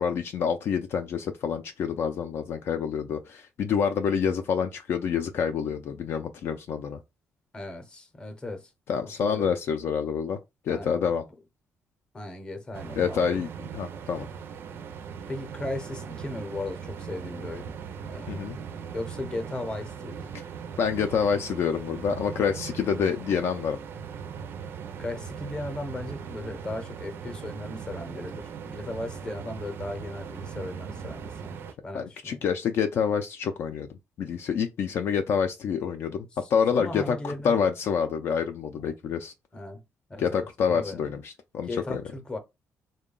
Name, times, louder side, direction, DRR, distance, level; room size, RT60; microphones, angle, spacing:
voice 1, 0.0-7.0 8.9-10.4 10.6-11.2 13.0-13.5 13.7-14.3 18.3-18.6 20.8-23.8 31.9-33.9 34.2-39.3 40.2-42.0, left 7 dB, 55° left, 0.4 m, -27 dB
voice 2, 7.5-8.7 9.2-9.5 10.7-11.1 12.1-13.4 15.3-17.8 18.1-18.4 18.9-20.3 25.0-32.4 36.7-37.6 38.8-38.9 39.5-39.8 40.1-41.1 41.7-42.4, left 2 dB, 15° left, 0.7 m, -37 dB
sound 1, 12.7-31.7, right 7 dB, 50° right, 0.4 m, -39 dB
3.6 x 2.2 x 3.7 m
cardioid pair, 175°, 5 cm